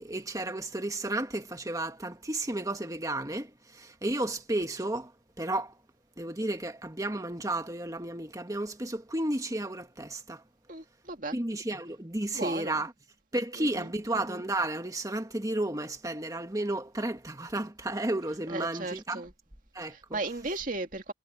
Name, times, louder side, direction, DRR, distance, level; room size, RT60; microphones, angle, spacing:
voice 1, 0.0-5.1 5.4-5.7 6.2-10.4 11.3-12.9 13.3-19.2 19.7-20.2, right 1 dB, 20° right, 1.7 m, -32 dB
voice 2, 10.7-11.4 12.3-12.7 13.6-13.9 18.5-19.3 19.9-21.1, right 2 dB, 45° right, 2.3 m, -36 dB
head